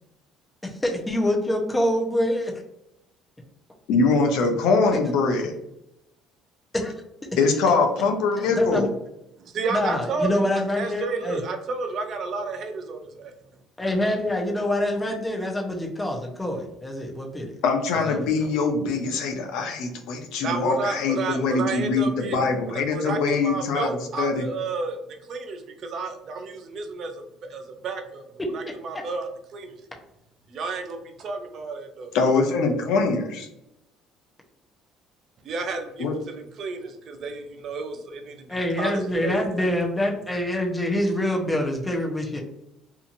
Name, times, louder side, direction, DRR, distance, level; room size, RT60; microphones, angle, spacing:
voice 1, 0.6-2.5 6.7-6.9 8.4-8.9 9.7-11.4 13.8-17.5 17.9-18.3 28.9-29.0 38.5-42.4, left 1 dB, 15° left, 1 dB, 0.7 m, -26 dB
voice 2, 3.9-5.5 7.4-8.9 17.6-23.9 24.2-24.4 32.1-33.5 36.0-36.1, left 4 dB, 80° left, 4 dB, 0.5 m, -23 dB
voice 3, 9.4-13.3 20.4-25.0 25.3-28.2 28.5-29.8 30.5-32.1 35.4-39.7, right 4 dB, 55° right, 5 dB, 0.5 m, -32 dB
2.8 x 2.5 x 2.5 m, 0.85 s
cardioid pair, 105°, 0 cm